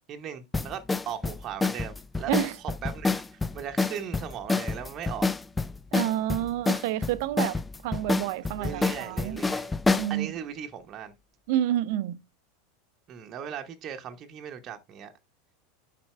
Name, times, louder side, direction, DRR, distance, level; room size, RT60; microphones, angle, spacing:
voice 1, 0.1-2.3 2.6-5.3 8.6-9.8 10.1-11.1 13.1-15.1, right 8 dB, 35° right, 0.9 m, -38 dB
sound 1, 0.5-10.1, left 3 dB, 10° left, 0.4 m, -28 dB
voice 2, 5.9-9.4 9.9-10.4 11.5-12.2, right 13 dB, 50° right, 0.6 m, -29 dB
7.1 x 5.9 x 3.3 m
figure-of-eight pair, 85°, 0 cm